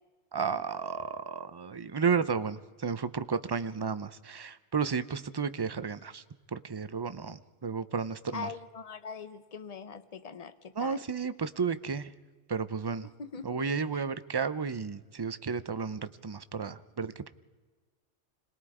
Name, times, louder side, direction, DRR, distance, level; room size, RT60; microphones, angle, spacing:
voice 1, 0.3-6.2 6.5-8.5 10.8-12.1 12.5-13.1 13.4-17.3, right 5 dB, 35° right, 13 dB, 0.4 m, -32 dB
voice 2, 8.3-11.0 13.2-14.0, left 5 dB, 35° left, 11 dB, 0.9 m, -42 dB
26.5 x 20.5 x 4.9 m, 1.4 s
omnidirectional pair, 1.2 m